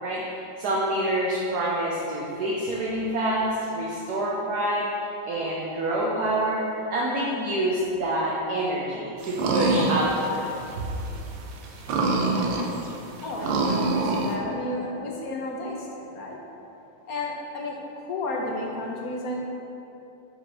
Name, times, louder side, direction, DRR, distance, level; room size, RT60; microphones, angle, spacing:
voice 1, 0.0-10.4, right 1 dB, 60° right, -5 dB, 1.1 m, -27 dB
sound 1, 9.2-10.7 11.0-11.1 11.6-14.3, right 3 dB, 85° right, 1.6 m, -24 dB
voice 2, 13.2-16.4 17.1-19.4, left 2 dB, 55° left, -1 dB, 1.0 m, -32 dB
5.6 x 5.1 x 5.5 m, 2.9 s
omnidirectional pair, 2.4 m